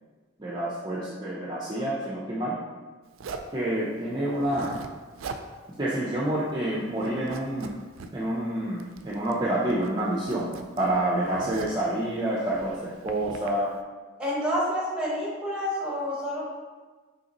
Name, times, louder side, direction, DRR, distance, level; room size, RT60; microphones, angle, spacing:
voice 1, 0.4-2.6 3.5-4.8 5.8-7.7 8.1-10.5 10.8-13.7, right 1 dB, 20° right, -5 dB, 0.5 m, -28 dB
Zipper (clothing), 3.2-3.6 4.3-5.5 5.8-5.9 6.3-6.7 7.0-8.1 8.8-9.4 9.7-11.9 12.5-13.5, right 4 dB, 80° right, 0.3 m, -41 dB
voice 2, 14.2-16.4, equal, 5° right, -5 dB, 1.1 m, -28 dB
5.3 x 3.2 x 2.9 m, 1.4 s
head